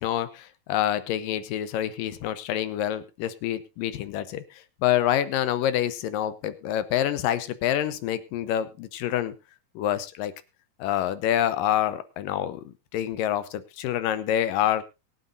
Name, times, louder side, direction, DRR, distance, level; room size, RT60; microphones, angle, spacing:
voice 1, 0.0-9.3 9.8-10.3 10.8-12.6 12.9-14.8, left 11 dB, 85° left, 14 dB, 2.6 m, -27 dB
23.0 x 8.2 x 2.6 m, 0.26 s
omnidirectional pair, 3.8 m